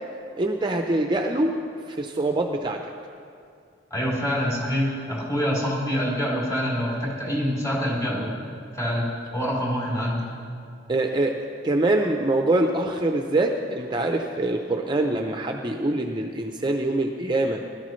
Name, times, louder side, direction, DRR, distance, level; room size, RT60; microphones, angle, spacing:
voice 1, 0.4-1.6 1.9-2.8 10.9-11.4 11.6-17.6, right 2 dB, 25° right, 3 dB, 0.6 m, -24 dB
voice 2, 3.9-8.3 8.7-9.1 9.3-10.3, equal, 20° left, -5 dB, 3.7 m, -26 dB
20.5 x 12.5 x 3.2 m, 2.3 s
head